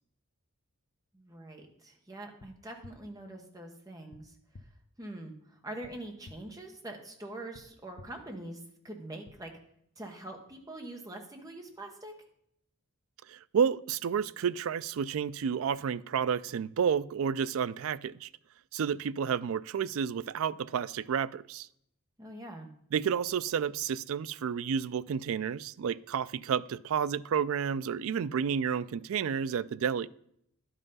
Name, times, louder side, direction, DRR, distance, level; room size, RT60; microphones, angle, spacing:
voice 1, 1.1-4.4 5.0-9.5 10.0-12.1 22.2-22.7, right 1 dB, 15° right, 1.2 m, -44 dB
sound 1, 2.4-2.5 2.8-2.9 4.1-4.2 4.5-4.6 5.8-5.9 6.2-6.3 7.5-7.6 8.0-8.1 9.2-9.3, left 3 dB, 60° left, 0.7 m, -49 dB
voice 2, 13.3-18.3 18.7-21.7 22.9-30.1, right 7 dB, 65° right, 0.3 m, -31 dB
11.0 x 5.6 x 5.4 m
head